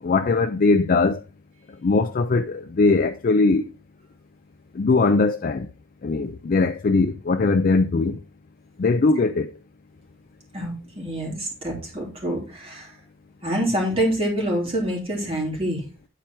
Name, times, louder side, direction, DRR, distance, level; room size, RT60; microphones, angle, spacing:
voice 1, 0.0-1.2 1.7-3.7 4.7-5.7 6.0-8.2 8.8-9.5, left 3 dB, 40° left, 0.4 m, -20 dB
voice 2, 10.5-12.9 13.4-15.8, right 1 dB, 25° right, 2.9 m, -26 dB
9.9 x 4.4 x 4.5 m
head